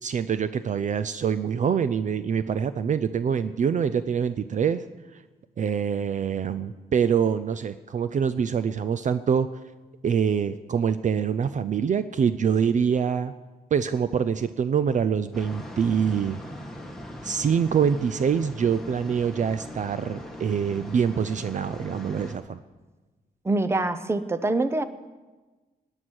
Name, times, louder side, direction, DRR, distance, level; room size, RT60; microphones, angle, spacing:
voice 1, 0.0-4.8 5.6-9.6 10.0-13.3 13.7-16.4 17.2-22.6, right 7 dB, 50° right, 13 dB, 0.5 m, -25 dB
sound 1, 15.3-22.3, equal, ahead, 1.9 m, -40 dB
voice 2, 23.4-24.8, right 2 dB, 15° right, 12 dB, 0.7 m, -24 dB
19.5 x 9.8 x 6.3 m, 1.2 s
wide cardioid pair, 155°, 17 cm